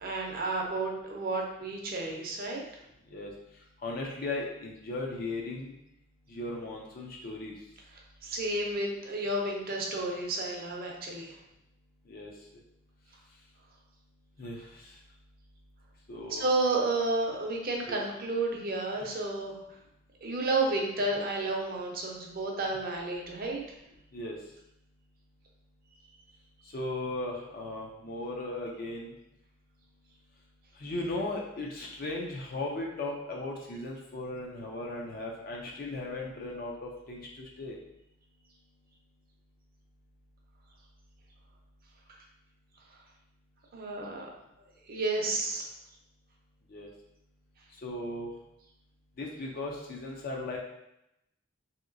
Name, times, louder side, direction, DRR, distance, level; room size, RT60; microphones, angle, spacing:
voice 1, 0.0-2.6 8.2-11.4 16.3-19.6 20.2-23.6 43.7-44.3 44.9-45.7, right 2 dB, 45° right, 0 dB, 0.5 m, -31 dB
voice 2, 3.8-5.7 6.3-7.5 12.1-12.3 14.4-14.9 16.1-16.4 17.9-18.0 24.1-24.4 26.7-29.1 30.8-37.8 46.7-46.9 47.8-48.3 49.2-50.6, left 2 dB, 45° left, -1 dB, 0.4 m, -37 dB
3.1 x 2.8 x 2.5 m, 0.84 s
head